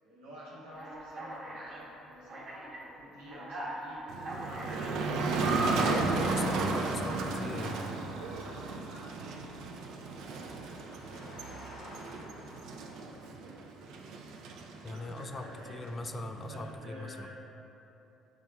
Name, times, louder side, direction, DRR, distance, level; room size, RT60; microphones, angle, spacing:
voice 1, 0.0-4.1 4.5-6.0 6.7-7.6 8.3-9.4 14.9-15.9 16.5-17.3, equal, 90° right, -7 dB, 1.0 m, -49 dB
Alarm, 0.8-1.8 2.3-2.8 3.3-4.9 5.4-6.0, right 2 dB, 55° right, 1.0 m, -37 dB
Motor vehicle (road), 4.1-16.8, right 3 dB, 70° right, 0.4 m, -35 dB
voice 2, 5.7-7.9 14.8-17.3, left 3 dB, 35° left, 6 dB, 0.3 m, -40 dB
Engine, 8.1-13.6, equal, 75° left, 0.9 m, -52 dB
6.8 x 3.5 x 2.2 m, 3.0 s
hypercardioid pair, 60°, 0 cm